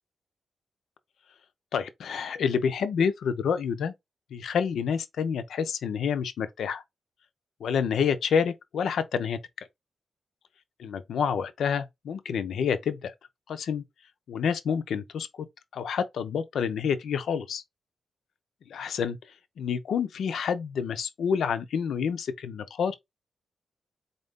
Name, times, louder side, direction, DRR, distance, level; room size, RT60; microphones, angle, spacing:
voice 1, 1.7-3.9 4.3-6.8 7.6-9.4 10.8-13.1 13.5-13.8 14.3-15.5 15.7-17.6 18.7-19.2 19.6-22.9, left 7 dB, 90° left, 0.5 m, -28 dB
4.2 x 2.6 x 3.5 m
wide cardioid pair, 150°, 0 cm